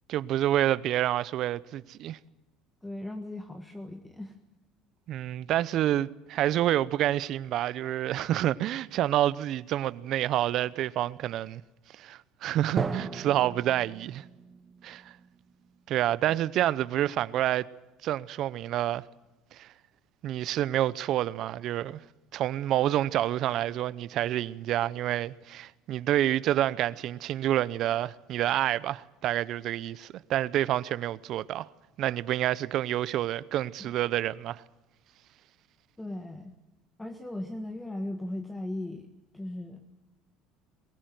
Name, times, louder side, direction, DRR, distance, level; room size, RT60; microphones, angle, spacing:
voice 1, 0.1-2.2 5.1-11.6 12.0-14.2 14.8-15.0 15.9-17.7 18.0-19.0 19.5-19.7 20.2-22.0 22.3-31.7 32.0-34.6, right 13 dB, 55° right, 0.7 m, -28 dB
voice 2, 2.8-4.4 33.8-33.9 36.0-36.5 37.0-39.1 39.3-39.8, left 1 dB, 10° left, 1.5 m, -37 dB
Drum, 12.8-16.5, right 4 dB, 25° right, 1.4 m, -37 dB
22.5 x 16.0 x 9.2 m
supercardioid pair, 110°, 0 cm